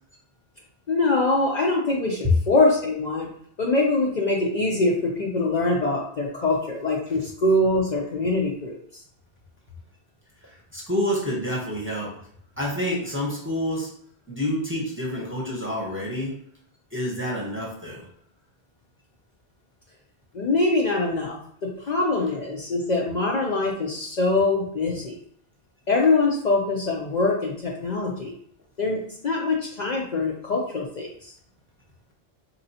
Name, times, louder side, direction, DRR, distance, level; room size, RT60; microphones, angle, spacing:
voice 1, 0.9-3.3 3.6-8.8 20.3-25.1 25.9-28.3 28.8-31.3, left 2 dB, 50° left, -2 dB, 0.6 m, -23 dB
voice 2, 10.4-12.2 12.6-13.9 14.3-16.3 16.9-18.1, equal, 15° right, -4 dB, 0.8 m, -28 dB
4.2 x 3.0 x 2.7 m, 0.64 s
omnidirectional pair, 1.1 m